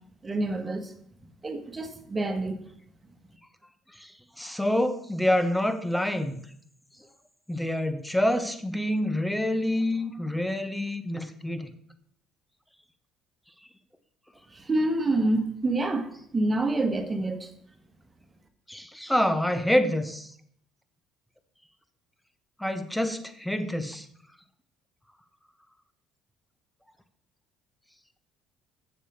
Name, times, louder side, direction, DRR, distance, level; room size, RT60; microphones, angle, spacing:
voice 1, 0.2-0.9 1.4-2.6 14.5-17.5, right 2 dB, 25° right, 6 dB, 1.8 m, -27 dB
voice 2, 3.9-6.4 7.5-11.7 18.7-20.3 22.6-24.1, left 1 dB, 5° left, 9 dB, 1.2 m, -27 dB
7.3 x 6.9 x 6.7 m, 0.66 s
hypercardioid pair, 60°, 0 cm